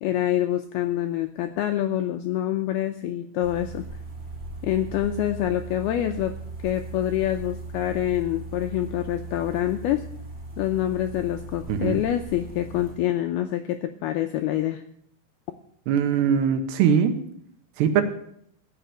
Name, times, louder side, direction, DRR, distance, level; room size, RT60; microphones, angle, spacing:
voice 1, 0.0-3.9 4.6-6.4 6.6-10.0 10.6-14.8, left 12 dB, 90° left, 7 dB, 2.2 m, -26 dB
sound 1, 3.4-13.0, right 2 dB, 15° right, 2.4 m, -38 dB
voice 2, 11.7-12.0 15.9-17.2 17.8-18.0, right 8 dB, 75° right, 8 dB, 3.1 m, -21 dB
15.0 x 5.8 x 8.7 m, 0.69 s
omnidirectional pair, 5.2 m